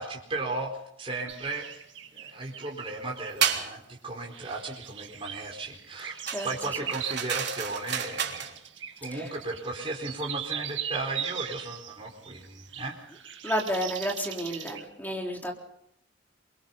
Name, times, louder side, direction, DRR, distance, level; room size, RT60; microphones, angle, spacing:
voice 1, 0.0-1.7 2.1-8.5 9.0-13.0, right 2 dB, 30° right, -1 dB, 4.4 m, -35 dB
sound 1, 1.3-3.6 4.3-14.9, right 9 dB, 85° right, 2.0 m, -39 dB
sound 2, 3.4-3.7 6.3-8.5, right 8 dB, 65° right, 3.5 m, -30 dB
voice 2, 6.3-6.9 9.1-9.3 13.4-15.5, equal, 10° left, 0 dB, 3.9 m, -32 dB
28.0 x 24.0 x 4.0 m, 0.74 s
head